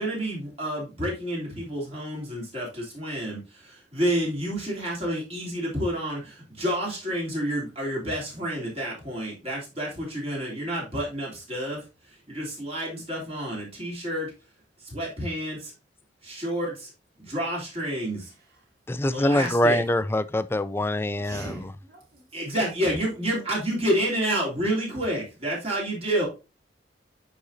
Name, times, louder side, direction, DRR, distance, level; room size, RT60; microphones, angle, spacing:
voice 1, 0.0-11.8 12.3-14.3 14.8-15.7 16.2-16.9 17.2-18.3 19.1-19.8 22.3-26.3, right 1 dB, 35° right, 3.1 m, -29 dB
voice 2, 18.9-21.7, left 1 dB, 15° left, 0.3 m, -24 dB
voice 3, 21.1-22.2, right 2 dB, 55° right, 3.1 m, -41 dB
9.8 x 4.1 x 2.7 m
head